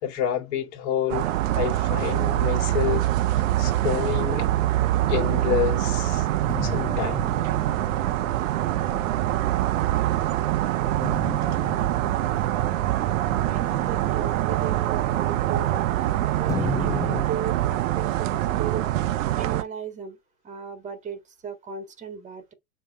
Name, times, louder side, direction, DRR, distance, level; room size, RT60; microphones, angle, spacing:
voice 1, 0.0-4.5 5.1-6.3 6.6-7.2 11.5-11.6, left 10 dB, 50° left, 3.1 m, -28 dB
sound 1, 1.1-19.6, right 14 dB, 60° right, 0.9 m, -24 dB
sound 2, 6.5-10.2 11.0-16.0 16.5-17.3, left 5 dB, 10° left, 0.5 m, -36 dB
voice 2, 13.4-18.9 19.3-20.2 20.4-22.5, right 6 dB, 15° right, 1.8 m, -36 dB
7.4 x 3.5 x 6.2 m
hypercardioid pair, 135°, 43 cm